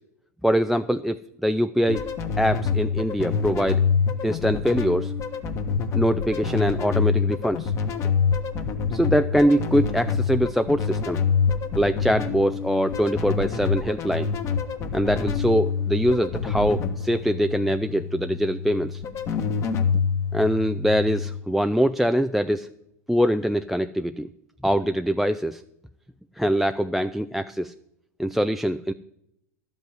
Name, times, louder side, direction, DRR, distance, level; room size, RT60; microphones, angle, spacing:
voice 1, 0.4-2.0 2.4-3.8 4.2-5.1 5.9-7.7 8.9-11.2 11.8-14.3 14.9-19.0 20.3-22.7 23.1-24.3 24.6-25.6 26.4-27.7 28.2-28.9, equal, ahead, 11 dB, 0.3 m, -23 dB
sound 1, 1.9-21.4, left 6 dB, 35° left, 1.2 m, -26 dB
12.0 x 5.5 x 9.0 m, 0.78 s
hypercardioid pair, 115°, 9 cm